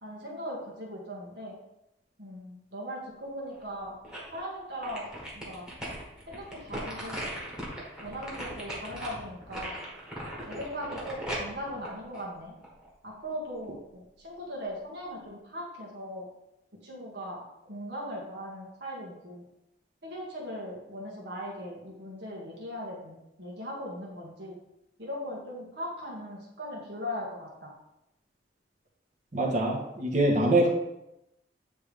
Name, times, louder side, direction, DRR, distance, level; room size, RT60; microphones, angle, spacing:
voice 1, 0.0-1.6 2.2-4.0 4.3-5.1 5.3-5.7 6.3-7.3 8.0-9.8 10.5-12.6 13.0-16.3 16.8-19.4 20.0-24.6 25.0-27.7, equal, 65° right, -4 dB, 1.9 m, -39 dB
sound 1, 3.6-4.4 4.8-12.9 13.3-13.4, equal, 5° right, 1.6 m, -39 dB
voice 2, 29.3-30.7, right 1 dB, 40° right, -1 dB, 1.3 m, -24 dB
9.5 x 3.5 x 3.5 m, 0.89 s
head